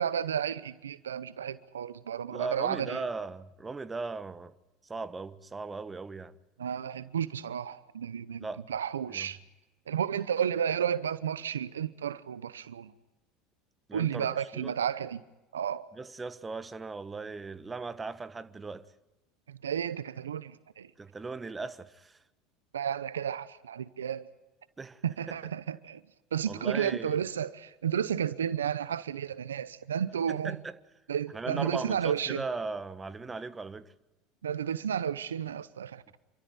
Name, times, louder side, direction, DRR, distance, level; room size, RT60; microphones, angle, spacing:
voice 1, 0.0-3.0 6.6-9.4 9.9-12.9 13.9-15.2 15.5-15.9 19.5-20.9 22.7-24.3 25.0-26.0 26.3-30.6 31.1-32.4 34.4-36.2, right 8 dB, 90° right, 0.8 m, -32 dB
voice 2, 2.3-4.5 4.8-6.3 8.4-8.6 9.1-9.3 13.9-14.3 14.5-14.7 15.9-18.9 21.0-22.2 24.8-25.0 25.3-25.4 26.5-27.1 30.3-30.7 31.3-33.9, right 4 dB, 20° right, 1.4 m, -38 dB
28.5 x 13.5 x 9.4 m
hypercardioid pair, 80°, 0 cm